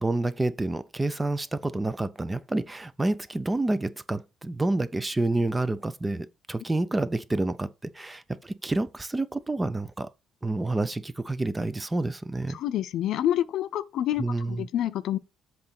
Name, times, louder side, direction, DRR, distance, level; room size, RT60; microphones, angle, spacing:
voice 1, 0.0-10.1 10.4-12.6 14.2-14.7, right 2 dB, 10° right, 0.5 m, -28 dB
voice 2, 12.5-15.2, left 11 dB, 60° left, 0.6 m, -28 dB
7.6 x 3.9 x 5.8 m
cardioid pair, 145°, 0 cm